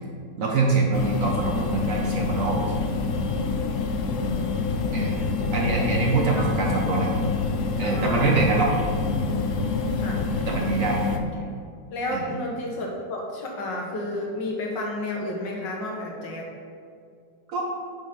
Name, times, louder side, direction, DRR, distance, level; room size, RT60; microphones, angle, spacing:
voice 1, 0.4-2.6 4.9-5.2 5.5-7.1 7.8-8.7 10.5-11.0 12.1-12.4 17.5-17.6, right 3 dB, 55° right, -2 dB, 1.0 m, -24 dB
sound 1, 0.9-11.2, left 4 dB, 85° left, 0.6 m, -26 dB
voice 2, 4.9-5.5 6.3-6.5 7.8-8.4 10.0-10.2 11.9-16.5, left 1 dB, 70° left, -1 dB, 1.9 m, -32 dB
6.2 x 5.0 x 5.9 m, 2.3 s
omnidirectional pair, 2.1 m